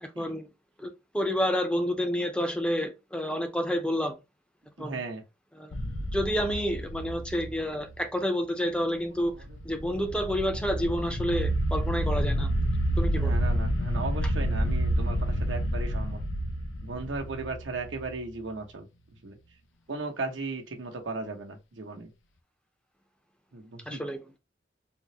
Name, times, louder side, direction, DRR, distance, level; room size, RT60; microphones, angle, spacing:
voice 1, 0.0-0.5 0.8-4.2 4.8-5.0 5.6-5.7 6.1-9.3 9.6-12.5 13.0-13.3 23.9-24.2, equal, 5° left, 0.5 m, -29 dB
voice 2, 4.8-5.2 9.3-9.4 13.2-16.2 16.8-18.9 19.2-19.4 19.9-22.1 23.5-24.0, right 3 dB, 85° right, 0.9 m, -36 dB
sound 1, 5.7-8.0 9.4-18.3, right 1 dB, 85° left, 0.6 m, -29 dB
3.7 x 2.0 x 2.7 m
head